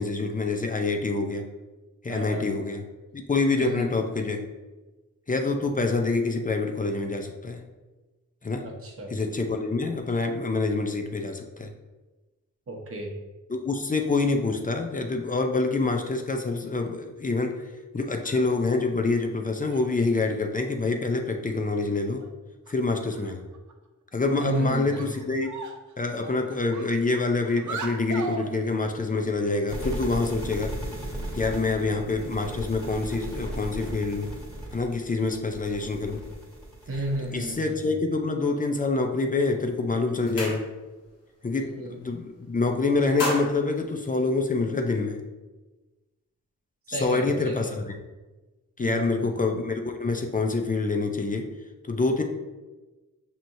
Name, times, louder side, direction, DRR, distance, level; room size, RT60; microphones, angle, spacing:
voice 1, 0.0-1.5 2.0-2.8 3.1-4.4 5.3-7.6 8.4-8.6 9.1-11.7 13.5-17.5 17.9-22.2 22.7-23.4 24.1-25.5 26.0-30.7 31.3-34.3 34.7-36.2 37.3-40.6 41.4-45.2 46.9-47.9 48.8-51.5 51.9-52.2, left 3 dB, 25° left, 4 dB, 0.5 m, -26 dB
voice 2, 2.1-2.5 3.6-3.9 8.6-9.1 12.7-13.1 24.4-25.1 36.9-37.9 41.5-42.0 46.9-47.7 48.8-49.3, right 1 dB, 40° right, -1 dB, 0.9 m, -33 dB
sound 1, 18.1-18.6 19.6-20.5 21.7-21.8 22.2-22.3 22.7-22.8 23.0-23.7 24.3-24.5 24.9-25.9 26.2-28.5, right 4 dB, 60° right, 0.5 m, -39 dB
sound 2, 29.7-37.7, right 1 dB, 5° left, 1.4 m, -37 dB
sound 3, 39.4-39.6 39.9-41.1 41.4-41.7 42.0-42.6 42.9-44.8, left 1 dB, 75° left, 1.3 m, -34 dB
6.0 x 2.8 x 2.6 m, 1.2 s
cardioid pair, 65°, 34 cm